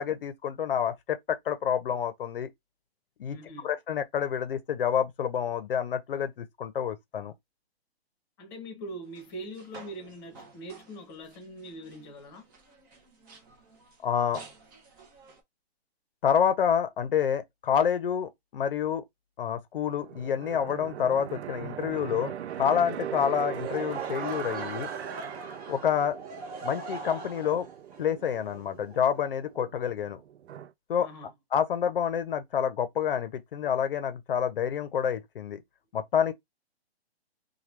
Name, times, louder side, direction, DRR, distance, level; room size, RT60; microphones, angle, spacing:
voice 1, 0.0-2.5 3.2-3.4 3.6-7.3 14.0-14.4 16.2-19.0 19.4-24.9 25.7-26.2 26.6-27.7 28.0-30.2 30.9-31.1 31.5-35.6 35.9-36.3, left 8 dB, 55° left, 0.7 m, -28 dB
voice 2, 3.3-3.7 8.4-12.4 31.0-31.3, right 1 dB, 20° left, 0.9 m, -42 dB
sound 1, 9.0-15.4, right 4 dB, 20° right, 0.6 m, -52 dB
sound 2, 20.0-30.7, right 10 dB, 75° right, 0.5 m, -40 dB
Laughter / Crowd, 23.5-29.5, right 3 dB, 35° right, 1.2 m, -41 dB
3.0 x 2.3 x 3.2 m
hypercardioid pair, 155°, 33 cm